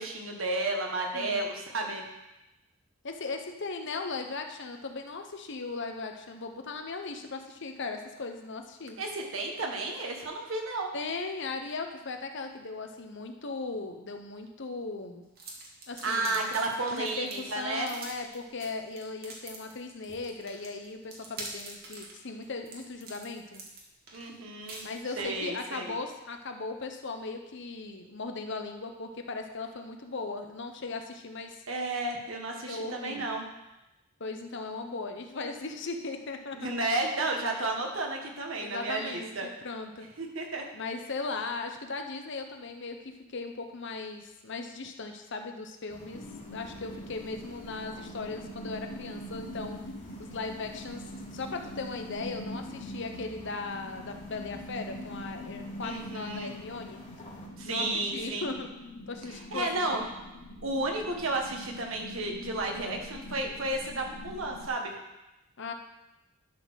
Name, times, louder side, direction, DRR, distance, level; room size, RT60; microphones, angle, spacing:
voice 1, 0.0-2.0 9.0-10.9 16.0-17.9 24.1-24.8 25.2-26.0 31.7-33.4 36.5-39.5 40.2-40.6 55.8-56.5 57.6-58.5 59.5-60.0 60.6-64.9, right 2 dB, 70° right, 1 dB, 1.6 m, -32 dB
voice 2, 3.0-9.0 10.9-15.2 15.9-16.4 16.9-23.6 24.8-31.6 32.7-33.3 34.2-36.9 38.6-40.1 40.7-43.0 43.3-46.2 46.5-49.8 50.2-51.0 51.3-57.0 57.6-57.8 58.1-58.7 59.1-60.1 65.6-65.7, left 3 dB, 60° left, 5 dB, 0.9 m, -38 dB
sound 1, 15.3-25.4, right 2 dB, 45° right, 1.8 m, -45 dB
sound 2, 45.9-57.5, left 1 dB, 35° left, 2.3 m, -50 dB
sound 3, 46.1-64.7, left 1 dB, 90° left, 0.9 m, -44 dB
11.5 x 4.2 x 6.3 m, 0.97 s
head